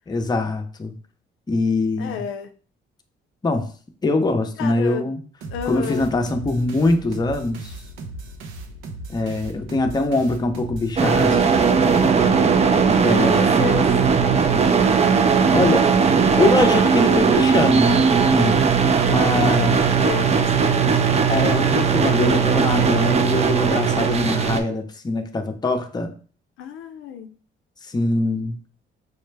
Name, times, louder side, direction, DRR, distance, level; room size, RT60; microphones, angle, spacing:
voice 1, 0.1-0.9 1.5-2.2 3.4-3.7 4.0-5.2 5.7-7.7 9.1-11.5 11.9-12.2 13.0-13.4 15.5-15.9 16.4-19.8 21.3-26.1 27.8-28.6, left 2 dB, 20° left, 5 dB, 0.6 m, -23 dB
voice 2, 2.0-2.5 4.6-5.1 5.5-6.1 12.1-12.5 13.0-13.9 19.5-21.2 26.6-27.3, left 8 dB, 80° left, 7 dB, 0.5 m, -32 dB
sound 1, 5.4-12.6, right 2 dB, 85° right, 0.6 m, -37 dB
sound 2, 11.0-24.6, right 5 dB, 35° right, 0.4 m, -18 dB
4.9 x 2.1 x 3.2 m, 0.40 s
cardioid pair, 90°, 20 cm